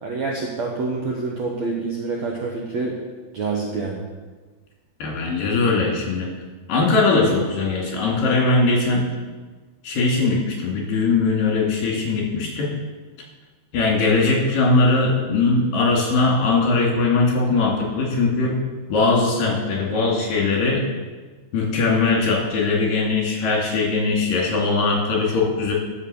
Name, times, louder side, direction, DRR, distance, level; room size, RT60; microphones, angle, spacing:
voice 1, 0.0-3.0 3.3-4.0, right 3 dB, 65° right, -2 dB, 1.8 m, -27 dB
voice 2, 5.0-6.3 6.7-9.1 9.8-12.7 13.7-18.5 18.9-20.8 21.5-25.7, left 3 dB, 60° left, -2 dB, 4.1 m, -20 dB
13.5 x 6.2 x 7.0 m, 1.4 s
omnidirectional pair, 4.6 m